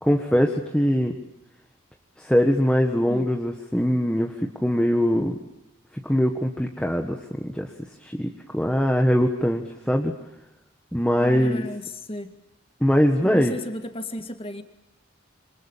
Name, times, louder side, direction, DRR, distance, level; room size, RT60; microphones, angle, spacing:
voice 1, 0.0-1.2 2.2-5.4 6.0-7.7 8.0-10.1 10.9-11.6 12.8-13.6, equal, 5° left, 3 dB, 1.5 m, -22 dB
voice 2, 11.2-11.8 12.1-12.3 13.2-14.6, equal, 25° left, 7 dB, 2.1 m, -33 dB
27.0 x 25.5 x 7.3 m, 0.91 s
head